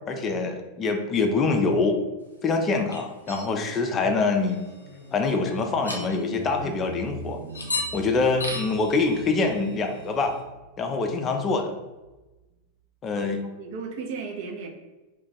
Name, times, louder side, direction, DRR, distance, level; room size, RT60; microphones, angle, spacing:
voice 1, 0.1-2.0 2.4-4.6 5.1-7.4 7.9-10.4 10.8-11.7 13.0-13.4, left 3 dB, 25° left, 4 dB, 0.4 m, -25 dB
sound 1, 2.9-3.5 4.5-5.0 5.5-5.6 5.8-6.4 7.5-8.0 8.4-10.3, left 1 dB, 80° left, 0.5 m, -35 dB
sound 2, 3.2-12.3, right 1 dB, 80° right, 0.9 m, -43 dB
voice 2, 13.2-14.7, right 5 dB, 50° right, 3 dB, 0.5 m, -35 dB
2.4 x 2.3 x 3.9 m, 1.1 s
figure-of-eight pair, 90°, 0 cm